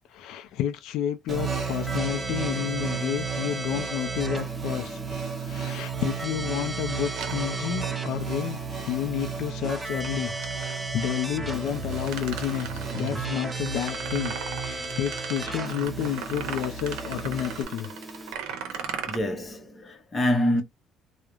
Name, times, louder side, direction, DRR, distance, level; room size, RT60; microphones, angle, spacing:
voice 1, 0.1-5.0 5.4-10.3 10.6-17.9, left 11 dB, 75° left, 0.4 m, -30 dB
Keyboard (musical), 1.3-18.4, right 2 dB, 10° right, 0.3 m, -37 dB
sound 1, 1.3-17.6, right 6 dB, 35° right, 0.8 m, -34 dB
sound 2, 7.2-8.2 10.0-10.9 11.7-19.2, right 7 dB, 85° right, 0.6 m, -38 dB
voice 2, 19.1-20.6, left 1 dB, 20° left, 0.7 m, -26 dB
2.4 x 2.0 x 3.0 m
cardioid pair, 145°, 0 cm